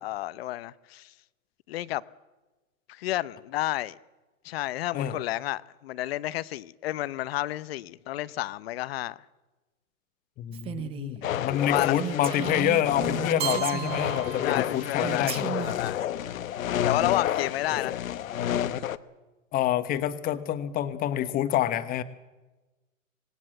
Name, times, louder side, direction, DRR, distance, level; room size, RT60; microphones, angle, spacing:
voice 1, 0.0-1.1 1.7-2.0 2.9-4.0 4.4-9.2 11.2-11.9 14.4-16.0 16.8-18.0, left 15 dB, 45° left, 0.8 m, -31 dB
voice 2, 10.4-15.5 19.5-22.0, left 11 dB, 20° left, 1.2 m, -27 dB
Female speech woman speaking, 10.5-11.1 11.5-11.6 11.9-14.2 15.0-15.9, right 9 dB, 15° right, 0.6 m, -35 dB
sound 1, 11.2-19.0, left 10 dB, 70° left, 1.2 m, -30 dB
Keyboard (musical), 13.4-15.3, right 10 dB, 45° right, 3.4 m, -35 dB
25.5 x 19.0 x 7.7 m
hypercardioid pair, 140°, 42 cm